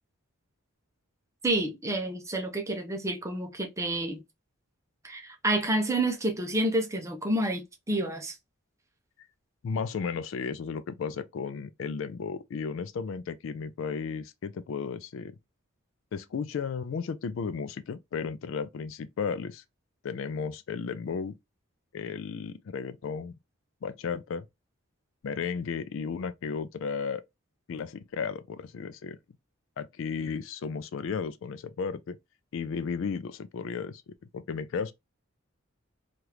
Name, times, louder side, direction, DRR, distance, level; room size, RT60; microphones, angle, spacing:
voice 1, 1.4-4.2 5.0-8.3, right 1 dB, 15° right, 0.6 m, -29 dB
voice 2, 9.6-15.3 16.1-19.6 20.0-21.4 21.9-23.3 23.8-24.5 25.2-27.2 27.7-29.2 29.8-32.2 32.5-34.9, left 5 dB, 65° left, 0.3 m, -34 dB
2.9 x 2.4 x 3.2 m
head